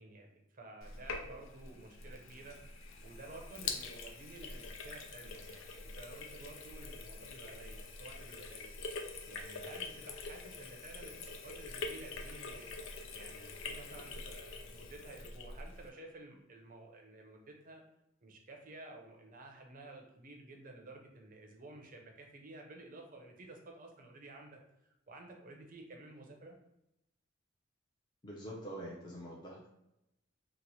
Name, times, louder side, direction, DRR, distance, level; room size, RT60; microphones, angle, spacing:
voice 1, 0.0-8.7 9.3-17.8 18.2-24.6 25.1-26.6, right 2 dB, 45° right, 2 dB, 0.6 m, -52 dB
Sink (filling or washing), 0.8-15.9, left 4 dB, 90° left, 0.5 m, -45 dB
voice 2, 28.2-29.7, right 1 dB, 20° left, -5 dB, 0.5 m, -45 dB
2.9 x 2.1 x 4.0 m, 0.85 s
head